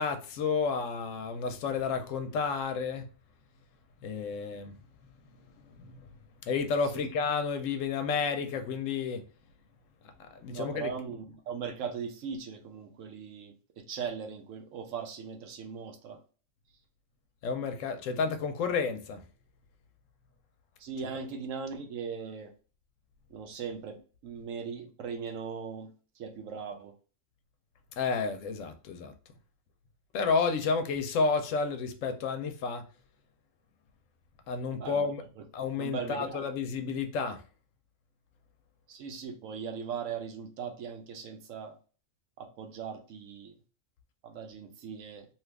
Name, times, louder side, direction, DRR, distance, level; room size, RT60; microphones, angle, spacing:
voice 1, 0.0-3.0 4.0-4.7 5.8-6.1 6.5-9.2 10.3-10.9 17.4-19.2 28.0-29.1 30.1-32.8 34.5-35.2 35.5-37.4, left 5 dB, 75° left, 0.9 m, -31 dB
voice 2, 10.5-16.2 20.8-22.5 23.3-25.9 26.2-26.9 34.8-35.0 35.8-36.4 38.9-41.7 42.4-43.5 44.2-45.3, right 6 dB, 75° right, 1.0 m, -39 dB
2.9 x 2.4 x 3.2 m
omnidirectional pair, 1.4 m